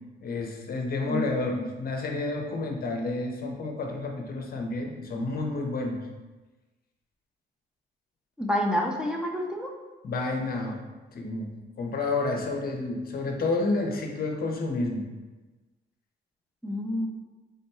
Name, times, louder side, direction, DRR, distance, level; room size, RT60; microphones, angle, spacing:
voice 1, 0.2-6.0 10.0-10.8 11.1-15.1, left 3 dB, 50° left, 2 dB, 0.7 m, -30 dB
voice 2, 1.1-1.7 8.4-9.7 16.6-17.1, left 1 dB, 5° right, 0 dB, 0.6 m, -28 dB
3.7 x 2.2 x 4.2 m, 1.2 s
cardioid pair, 90°, 20 cm